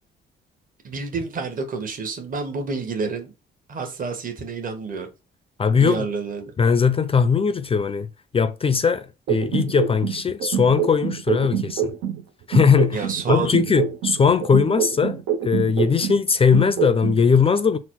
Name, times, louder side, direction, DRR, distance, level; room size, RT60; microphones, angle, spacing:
voice 1, 0.8-3.3 3.7-5.1 5.8-6.5 12.9-13.5, right 4 dB, 45° right, 1.1 m, -29 dB
voice 2, 5.6-6.1 6.6-8.1 8.3-11.9 12.5-17.8, left 6 dB, 30° left, 0.4 m, -19 dB
sound 1, 9.3-12.2 12.5-16.2 16.5-17.2, right 8 dB, 85° right, 0.7 m, -25 dB
4.0 x 2.1 x 4.5 m
cardioid pair, 90°, 20 cm